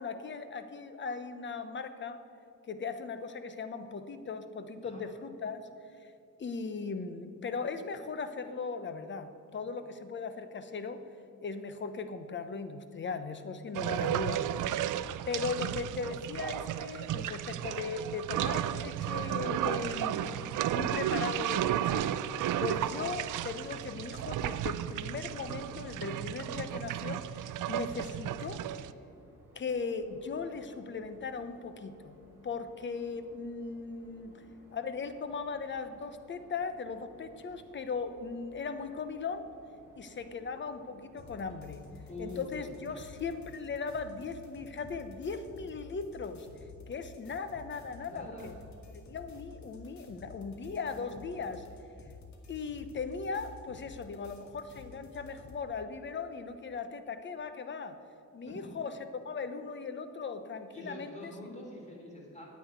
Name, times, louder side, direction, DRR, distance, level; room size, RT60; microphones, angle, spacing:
voice 1, 0.0-2.2 2.7-5.6 6.4-11.0 11.4-14.5 14.7-15.0 15.3-20.5 20.7-22.1 22.6-28.6 29.5-32.2 32.4-34.3 34.7-39.5 40.0-41.8 42.2-46.5 46.9-48.5 48.9-51.6 52.5-58.0 58.3-59.0 59.2-61.6, left 5 dB, 40° left, 10 dB, 0.8 m, -38 dB
sound 1, 13.7-28.9, right 11 dB, 90° right, 0.5 m, -33 dB
sound 2, 27.8-43.6, equal, 5° right, 2.5 m, -59 dB
sound 3, 41.2-55.6, left 4 dB, 65° left, 2.0 m, -51 dB
voice 2, 42.1-43.1 48.0-48.5 58.4-58.7 60.7-62.5, left 1 dB, 20° left, -2 dB, 3.4 m, -45 dB
9.8 x 8.6 x 9.3 m, 2.5 s
wide cardioid pair, 145°, 30 cm